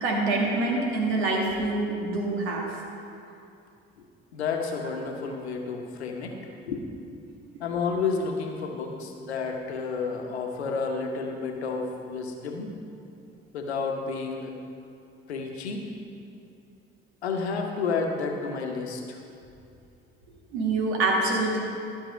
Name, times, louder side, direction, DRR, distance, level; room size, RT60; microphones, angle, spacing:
voice 1, 0.0-2.6 20.5-21.6, right 2 dB, 75° right, -1 dB, 1.8 m, -25 dB
voice 2, 4.3-6.4 6.7-6.8 7.6-12.7 13.5-14.6 15.3-15.9 17.2-19.2, left 4 dB, 90° left, 3 dB, 1.0 m, -31 dB
13.0 x 6.3 x 5.0 m, 2.5 s
hypercardioid pair, 55°, 32 cm